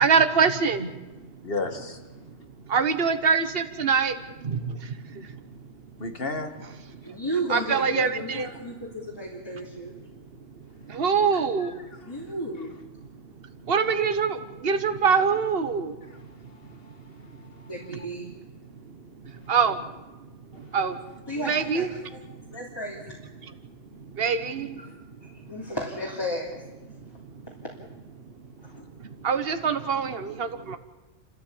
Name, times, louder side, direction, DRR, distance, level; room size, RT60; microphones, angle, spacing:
voice 1, 0.0-1.3 2.7-5.4 7.1-7.2 7.5-8.5 10.1-10.2 10.8-11.9 13.2-16.0 16.7-16.8 18.8-20.0 20.5-21.1 21.4-21.9 22.3-22.4 23.9-24.8 27.0-27.4 29.0-30.8, right 6 dB, 50° right, 9 dB, 1.5 m, -25 dB
voice 2, 1.4-2.0 6.0-6.5 11.3-11.7 16.1-16.2 16.5-16.9 17.3-17.7, left 3 dB, 50° left, 7 dB, 2.1 m, -34 dB
voice 3, 7.0-9.9 12.0-12.7 17.7-18.3 21.3-22.2 22.5-23.2 25.2-26.6 27.5-27.6 28.6-28.8, equal, 20° left, -3 dB, 3.2 m, -33 dB
29.5 x 13.5 x 8.7 m, 1.1 s
omnidirectional pair, 1.3 m